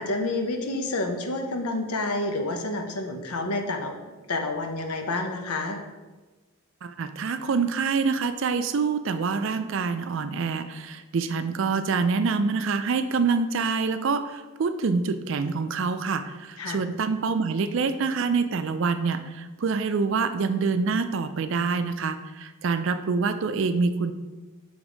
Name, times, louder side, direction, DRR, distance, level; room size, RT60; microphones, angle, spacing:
voice 1, 0.0-3.9 4.3-5.8 16.6-16.8, left 2 dB, 90° left, 5 dB, 0.8 m, -29 dB
voice 2, 6.8-24.1, right 4 dB, 60° right, 10 dB, 0.4 m, -26 dB
6.2 x 3.5 x 5.0 m, 1.2 s
head